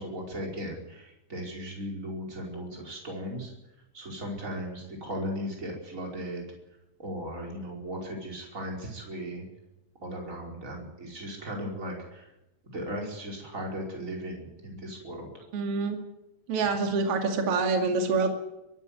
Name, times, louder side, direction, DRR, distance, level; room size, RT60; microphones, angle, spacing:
voice 1, 0.0-3.5 3.9-6.5 7.0-9.4 10.0-12.3 12.6-15.3, equal, 20° right, -1 dB, 5.2 m, -37 dB
voice 2, 15.5-16.0 16.5-18.3, right 4 dB, 45° right, 4 dB, 3.0 m, -26 dB
23.0 x 12.5 x 9.6 m, 0.93 s
omnidirectional pair, 4.3 m